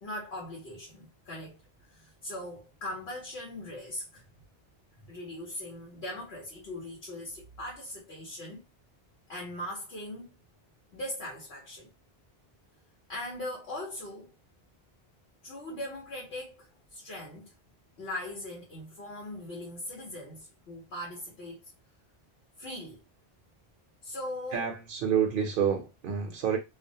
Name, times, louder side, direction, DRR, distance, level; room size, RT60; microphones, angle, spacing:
voice 1, 0.0-1.6 1.8-4.2 5.0-8.6 9.3-10.3 10.9-11.9 13.1-14.3 15.4-17.5 18.0-21.6 22.6-23.0 24.0-24.7, left 1 dB, 85° left, 1.1 m, -40 dB
voice 2, 24.5-26.6, right 8 dB, 65° right, 0.7 m, -28 dB
2.4 x 2.0 x 2.7 m
omnidirectional pair, 1.1 m